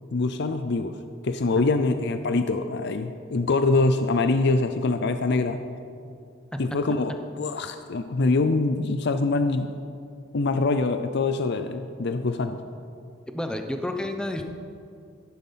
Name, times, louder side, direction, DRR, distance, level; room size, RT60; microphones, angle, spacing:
voice 1, 0.1-5.6 6.6-7.1 7.4-9.7 10.3-12.6, left 3 dB, 55° left, 9 dB, 0.6 m, -24 dB
voice 2, 13.3-14.4, left 1 dB, 5° left, 5 dB, 0.9 m, -30 dB
14.0 x 10.5 x 5.7 m, 2.4 s
head